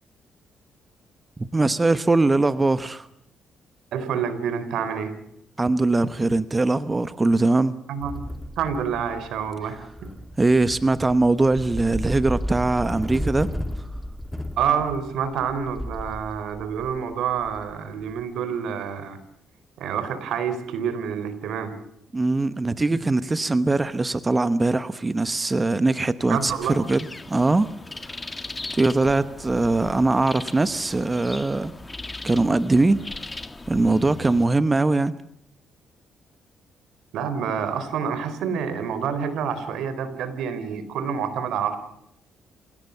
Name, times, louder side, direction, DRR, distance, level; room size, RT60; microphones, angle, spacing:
voice 1, 1.4-3.1 5.6-7.8 10.4-13.5 22.1-27.7 28.7-31.7 32.2-33.0 33.7-35.1, right 2 dB, 20° right, 13 dB, 1.0 m, -21 dB
voice 2, 3.9-5.2 7.9-8.2 8.6-10.1 14.6-19.2 19.8-21.8 26.3-26.8 37.1-41.8, right 7 dB, 80° right, 12 dB, 3.9 m, -28 dB
sound 1, 8.0-18.2, equal, ahead, 2.1 m, -34 dB
sound 2, 26.3-34.5, left 2 dB, 15° left, 1.8 m, -38 dB
28.0 x 17.5 x 6.9 m, 0.76 s
cardioid pair, 90°, 0 cm